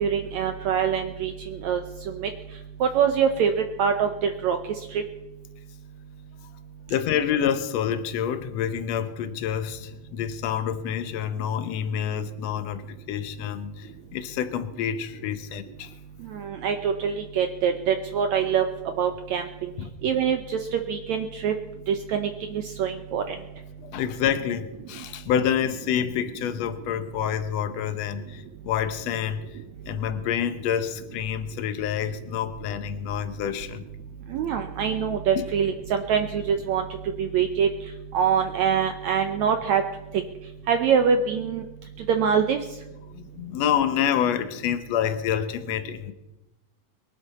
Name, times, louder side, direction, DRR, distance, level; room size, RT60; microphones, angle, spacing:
voice 1, 0.0-2.3 2.8-4.6 4.9-5.0 16.3-18.6 19.0-19.7 20.0-21.5 21.9-23.4 34.3-36.8 37.2-37.7 38.1-39.8 40.7-41.6 42.1-42.6, right 7 dB, 75° right, 1.7 m, -24 dB
voice 2, 6.9-15.9 19.8-19.9 23.8-29.6 29.8-33.8 35.3-35.5 43.1-46.1, left 9 dB, 70° left, 1.6 m, -28 dB
23.0 x 11.0 x 4.2 m
omnidirectional pair, 4.1 m